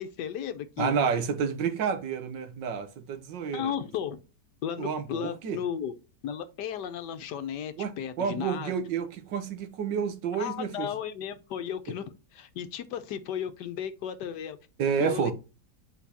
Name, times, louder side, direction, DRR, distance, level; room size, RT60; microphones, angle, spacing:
voice 1, 0.0-0.9 3.5-4.2 4.6-5.9 6.2-8.7 10.3-14.6 15.0-15.3, left 9 dB, 75° left, 1.3 m, -34 dB
voice 2, 0.8-3.7 4.8-5.6 7.8-10.9 14.8-15.3, right 6 dB, 90° right, 1.7 m, -30 dB
8.1 x 4.6 x 2.8 m
omnidirectional pair, 1.9 m